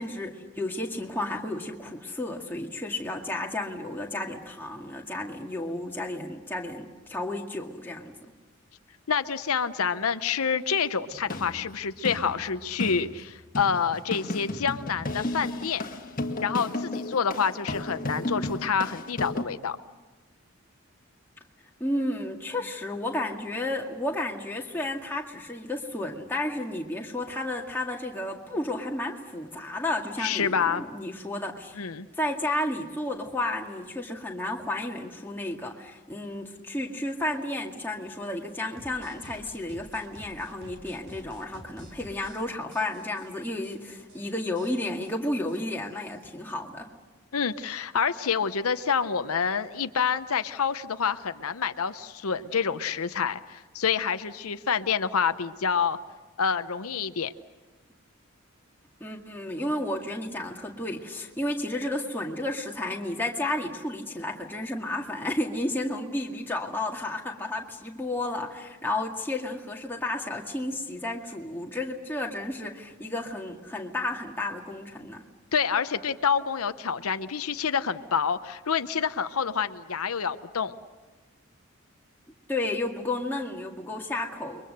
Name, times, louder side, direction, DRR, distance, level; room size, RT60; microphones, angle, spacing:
voice 1, 0.0-8.1 21.8-31.9 32.2-46.9 59.0-75.2 82.5-84.6, left 1 dB, 10° left, 0 dB, 2.1 m, -32 dB
voice 2, 9.1-15.8 16.4-19.8 30.2-30.8 31.7-32.1 47.3-56.0 56.4-57.3 75.5-80.7, left 6 dB, 85° left, 11 dB, 0.8 m, -27 dB
sound 1, 11.1-19.4, left 1 dB, 40° left, 1.7 m, -34 dB
sound 2, 38.8-42.4 42.7-43.3 43.6-43.7 44.0-44.2 44.5-46.2, right 1 dB, 50° right, 4.7 m, -50 dB
30.0 x 23.0 x 6.7 m, 1.3 s
head